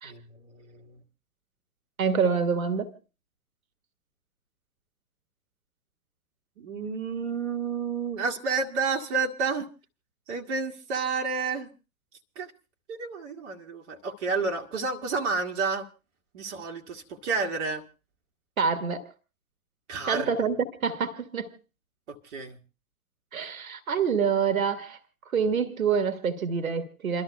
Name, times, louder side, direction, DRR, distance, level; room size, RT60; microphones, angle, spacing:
voice 1, 0.0-1.0 6.6-9.7 10.3-11.7 12.3-12.5 12.9-15.9 16.3-17.8 19.9-20.3 22.1-22.6, right 4 dB, 50° right, 1.5 m, -30 dB
voice 2, 2.0-2.9 18.6-19.1 20.1-21.5 23.3-25.0 25.2-27.2, right 6 dB, 65° right, 1.6 m, -26 dB
28.5 x 12.5 x 2.3 m
figure-of-eight pair, 115°, 44 cm